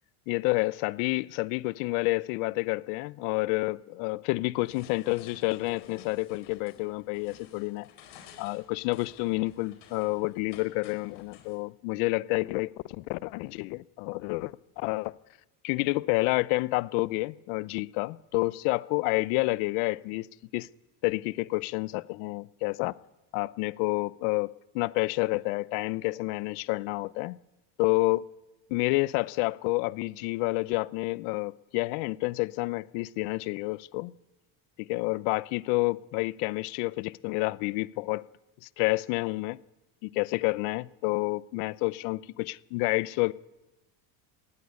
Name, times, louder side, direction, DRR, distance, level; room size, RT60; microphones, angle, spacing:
voice 1, 0.3-7.9 8.4-15.1 15.6-20.3 20.5-20.7 21.0-22.9 23.3-27.4 27.8-28.3 28.7-34.1 34.8-38.2 38.8-39.6 40.0-43.3, left 23 dB, 80° left, 0.8 m, -29 dB
sound 1, 4.6-11.6, left 8 dB, 60° left, 4.9 m, -53 dB
18.5 x 16.0 x 9.7 m
cardioid pair, 130°, 46 cm